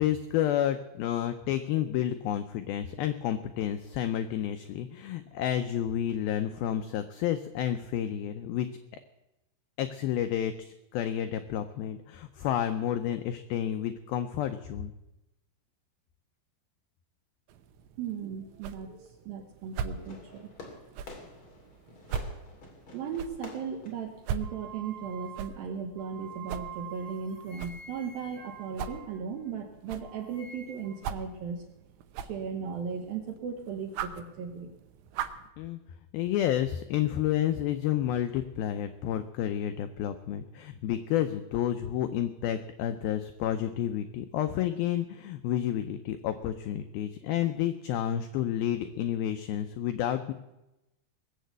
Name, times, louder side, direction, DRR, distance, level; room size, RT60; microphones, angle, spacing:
voice 1, 0.0-8.7 9.8-14.9 35.6-35.8 36.1-50.3, left 11 dB, 85° left, 9 dB, 2.1 m, -30 dB
sound 1, 17.5-35.5, right 7 dB, 85° right, 3.2 m, -42 dB
voice 2, 18.0-20.6 22.9-31.6 32.2-34.7, right 6 dB, 70° right, 4 dB, 2.4 m, -37 dB
Fireworks, 19.9-25.0, left 3 dB, 35° left, 2.7 m, -49 dB
sound 2, 24.4-29.7 30.0-31.1, right 7 dB, 50° right, 3.8 m, -47 dB
20.0 x 7.5 x 8.1 m, 0.96 s
omnidirectional pair, 5.1 m